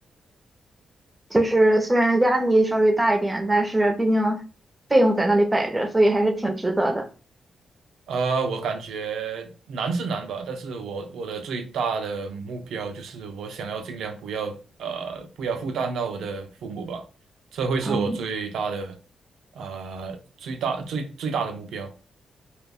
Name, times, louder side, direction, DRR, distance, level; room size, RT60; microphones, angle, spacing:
voice 1, 1.3-4.4 4.9-7.1 17.9-18.2, right 1 dB, 20° right, 0.6 m, -20 dB
voice 2, 8.1-17.0 17.5-19.0 19.5-21.9, right 5 dB, 85° right, 0.5 m, -30 dB
2.4 x 2.2 x 3.4 m
cardioid pair, 70°, 0 cm